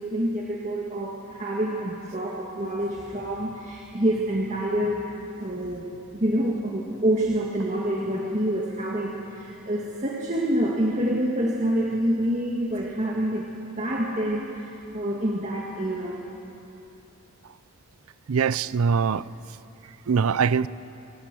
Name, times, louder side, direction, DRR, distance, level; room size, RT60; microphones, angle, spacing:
voice 1, 0.0-5.0 5.4-13.5 13.7-16.2, right 1 dB, 30° right, -2 dB, 1.8 m, -27 dB
voice 2, 18.3-19.2 20.1-20.7, right 6 dB, 80° right, 18 dB, 0.5 m, -22 dB
26.0 x 19.5 x 7.7 m, 2.8 s
head